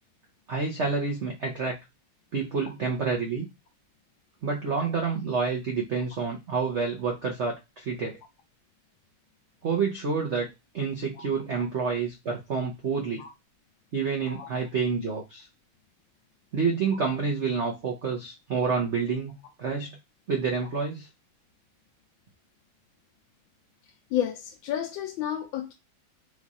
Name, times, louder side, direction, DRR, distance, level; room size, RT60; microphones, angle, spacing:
voice 1, 0.5-1.8 2.3-3.5 4.4-8.2 9.6-10.5 10.7-13.2 13.9-15.5 16.5-19.3 19.6-20.0 20.3-21.1, right 5 dB, 75° right, 0.6 m, -28 dB
voice 2, 24.1-25.7, left 10 dB, 75° left, 1.3 m, -31 dB
4.5 x 2.4 x 4.0 m
omnidirectional pair, 2.3 m